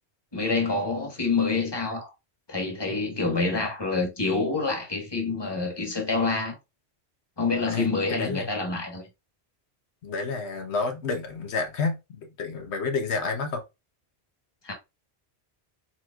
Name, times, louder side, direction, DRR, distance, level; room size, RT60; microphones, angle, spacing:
voice 1, 0.3-2.1 2.5-6.6 7.4-9.0 14.6-14.7, left 3 dB, 25° left, 1.3 m, -27 dB
voice 2, 7.7-8.4 10.0-13.6, left 4 dB, 80° left, 1.1 m, -30 dB
4.4 x 4.4 x 2.3 m
omnidirectional pair, 1.1 m